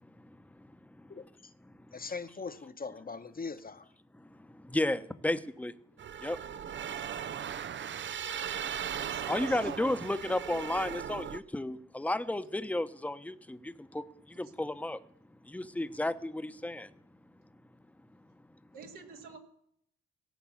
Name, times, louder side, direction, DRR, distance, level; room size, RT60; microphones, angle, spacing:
voice 1, 1.1-1.5 1.9-3.9, left 4 dB, 30° left, 1.1 m, -41 dB
voice 2, 4.2-5.7 6.2-6.4 9.3-15.0 15.4-16.9, left 1 dB, 5° left, 0.9 m, -33 dB
sound 1, 6.0-11.4, right 9 dB, 40° right, 0.5 m, -38 dB
voice 3, 8.9-9.8 10.3-10.8 14.4-14.5 18.7-19.4, right 6 dB, 80° right, 2.1 m, -48 dB
17.0 x 5.9 x 7.4 m
hypercardioid pair, 45°, 32 cm